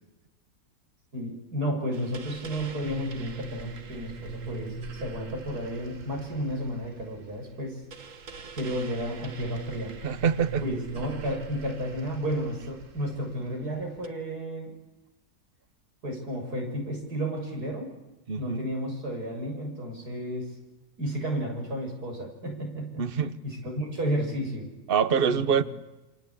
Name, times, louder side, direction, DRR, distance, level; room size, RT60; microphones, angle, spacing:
voice 1, 1.1-7.8 8.6-9.9 10.6-14.8 16.0-17.9 18.3-20.5 21.0-23.1 23.4-24.7 25.3-25.6, equal, 75° right, 0 dB, 7.7 m, -32 dB
sound 1, 1.9-14.1, right 4 dB, 55° right, 1.8 m, -42 dB
voice 2, 10.0-10.6 18.3-18.6 23.0-23.3 24.9-25.6, right 7 dB, 40° right, 13 dB, 1.2 m, -25 dB
28.0 x 25.0 x 8.5 m, 1.0 s
omnidirectional pair, 1.7 m